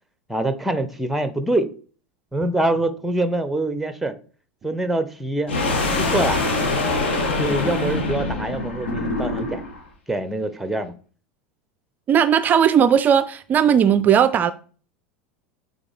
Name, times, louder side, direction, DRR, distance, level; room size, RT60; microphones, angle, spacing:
voice 1, 0.3-1.7 2.3-4.2 4.6-5.5 6.0-6.5 7.4-9.6 10.1-10.9, right 2 dB, ahead, 0.7 m, -24 dB
sound 1, 5.5-9.8, left 2 dB, 65° left, 1.5 m, -24 dB
voice 2, 12.1-14.5, right 8 dB, 30° right, 0.4 m, -17 dB
8.7 x 4.1 x 3.3 m
figure-of-eight pair, 80°, 6 cm